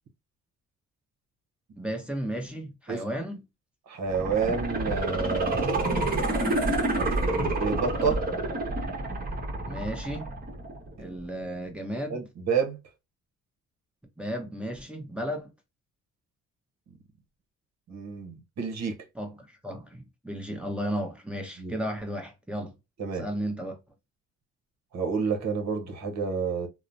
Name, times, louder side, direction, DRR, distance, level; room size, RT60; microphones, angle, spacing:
voice 1, 1.8-3.4 9.6-10.3 11.0-12.2 14.2-15.5 19.1-22.7 23.1-23.8, equal, 5° right, 0.8 m, -34 dB
voice 2, 3.9-6.1 6.9-8.2 12.1-12.8 17.9-19.0 21.6-21.7 23.0-23.3 24.9-26.7, right 5 dB, 65° right, 0.9 m, -29 dB
sound 1, 4.0-11.0 11.4-11.5, right 2 dB, 30° right, 1.1 m, -28 dB
2.9 x 2.1 x 2.5 m
cardioid pair, 90°, 30 cm